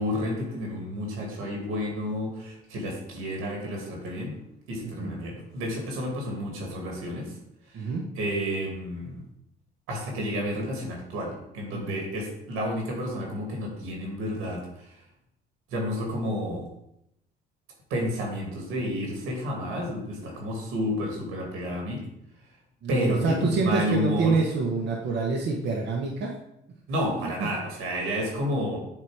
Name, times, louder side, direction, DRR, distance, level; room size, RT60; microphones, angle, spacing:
voice 1, 0.0-4.4 4.7-7.3 7.7-7.8 8.1-9.2 9.9-14.6 15.7-16.7 17.9-22.0 22.9-24.4 26.9-28.8, equal, 85° right, 0 dB, 2.0 m, -30 dB
voice 2, 0.9-1.3 4.8-5.2 7.7-8.0 11.7-12.0 22.8-26.3 27.2-27.5, right 4 dB, 60° right, -1 dB, 1.1 m, -27 dB
7.6 x 3.0 x 4.7 m, 0.80 s
cardioid pair, 85°, 21 cm